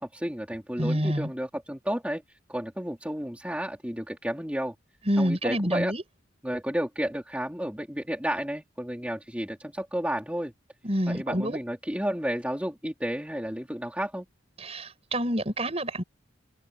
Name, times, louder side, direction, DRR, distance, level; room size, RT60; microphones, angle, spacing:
voice 1, 0.0-4.7 5.2-5.9 6.4-10.5 11.1-14.2, equal, 5° right, 3.2 m, -32 dB
voice 2, 0.8-1.3 5.1-6.0 10.8-11.6 14.6-16.0, equal, 30° right, 6.6 m, -27 dB
head